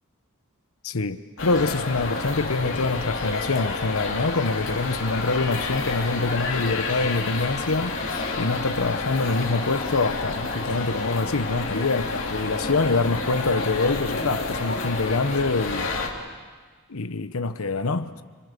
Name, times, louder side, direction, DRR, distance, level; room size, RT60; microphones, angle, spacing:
voice 1, 0.8-8.0 8.4-15.9 16.9-18.2, left 3 dB, 85° left, 1.0 m, -25 dB
sound 1, 1.4-16.1, left 3 dB, 60° left, 3.5 m, -29 dB
29.0 x 25.5 x 6.8 m
head